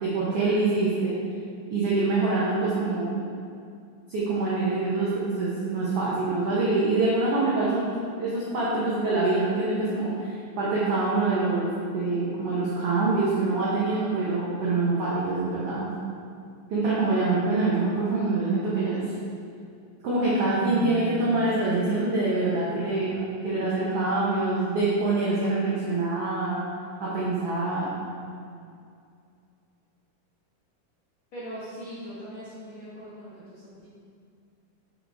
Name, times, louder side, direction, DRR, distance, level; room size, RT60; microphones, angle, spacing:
voice 1, 0.0-1.2 1.7-3.2 4.1-7.9 8.2-15.9 16.7-19.1 20.0-26.6 27.0-27.9, right 3 dB, 75° right, -7 dB, 1.3 m, -25 dB
sound 1, 20.3-24.5, left 3 dB, 85° left, 2.7 m, -40 dB
voice 2, 31.3-33.9, equal, 65° left, -11 dB, 1.3 m, -40 dB
6.3 x 6.3 x 3.4 m, 2.4 s
omnidirectional pair, 4.0 m